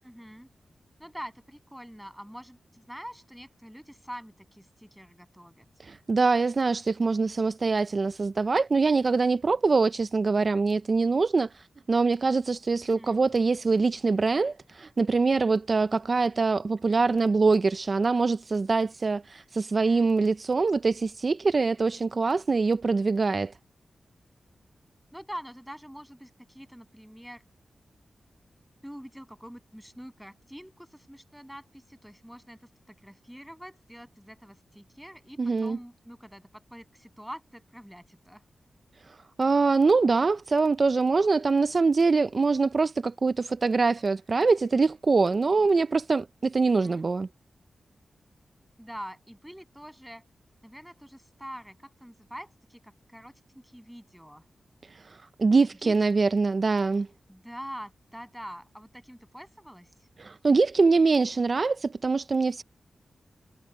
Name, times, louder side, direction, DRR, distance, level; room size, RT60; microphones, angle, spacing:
voice 1, 0.0-0.5 1.0-5.9 12.8-13.2 19.7-20.1 25.1-27.5 28.8-38.5 46.8-47.1 48.8-50.3 50.6-54.4 55.5-56.0 57.3-60.1, equal, ahead, 7.6 m, -45 dB
voice 2, 5.8-23.5 35.4-35.8 39.1-47.3 54.9-57.1 60.2-62.6, right 4 dB, 40° right, 0.4 m, -24 dB
wide cardioid pair, 110°, 0 cm